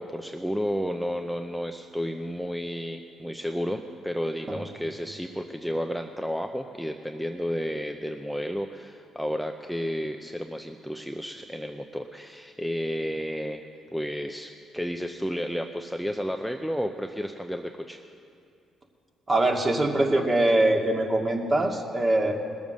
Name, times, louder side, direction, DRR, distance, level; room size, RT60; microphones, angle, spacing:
voice 1, 0.0-13.7 13.9-18.0, equal, ahead, 5 dB, 0.7 m, -32 dB
voice 2, 19.3-22.3, right 1 dB, 30° right, 1 dB, 2.1 m, -23 dB
20.0 x 7.1 x 6.4 m, 2.4 s
supercardioid pair, 60°, 0 cm